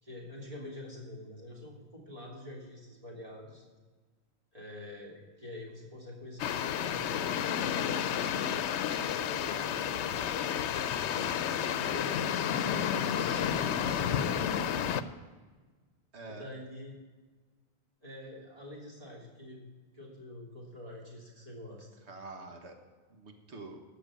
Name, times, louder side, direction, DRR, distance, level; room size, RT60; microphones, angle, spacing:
voice 1, 0.0-3.6 4.5-7.3 7.7-8.5 8.9-12.1 16.2-16.9 18.0-19.6 19.9-21.9, left 1 dB, 35° right, -3 dB, 2.9 m, -46 dB
sound 1, 6.4-15.0, left 9 dB, 85° left, 0.9 m, -31 dB
voice 2, 13.2-14.3 16.1-16.4 22.1-22.7 23.1-23.8, right 2 dB, 80° right, 4 dB, 1.7 m, -47 dB
14.0 x 6.0 x 8.5 m, 1.4 s
omnidirectional pair, 1.1 m